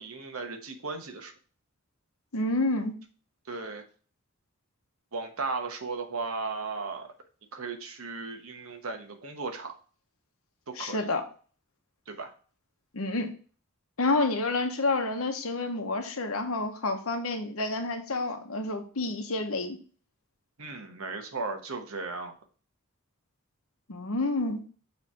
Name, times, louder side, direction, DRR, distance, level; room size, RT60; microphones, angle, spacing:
voice 1, 0.0-1.3 3.5-3.8 5.1-7.1 7.5-9.7 10.7-11.1 12.1-12.3 20.6-22.3, right 4 dB, 85° right, 5 dB, 1.1 m, -36 dB
voice 2, 2.3-3.0 10.8-11.2 12.9-13.3 14.0-19.8 23.9-24.6, left 2 dB, 80° left, 5 dB, 1.1 m, -29 dB
6.9 x 3.3 x 4.3 m, 0.39 s
head